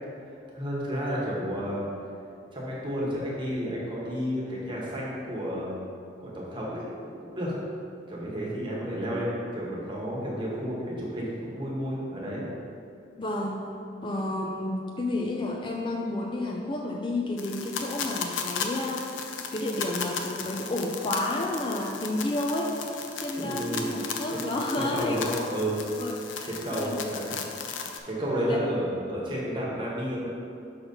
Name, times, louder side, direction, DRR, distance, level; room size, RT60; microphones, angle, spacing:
voice 1, 0.5-1.8 2.5-5.8 6.2-7.5 8.1-12.4 23.4-23.9 24.3-24.5 24.8-25.8 26.5-27.3 28.1-30.3, equal, 25° right, -5 dB, 1.2 m, -31 dB
voice 2, 13.2-13.7 14.0-19.1 19.5-25.6 25.9-26.5 26.8-27.1 28.5-28.7, left 1 dB, 25° left, 0 dB, 0.4 m, -31 dB
sound 1, 17.4-28.0, left 6 dB, 80° left, 0.5 m, -36 dB
5.8 x 4.1 x 5.3 m, 2.5 s
head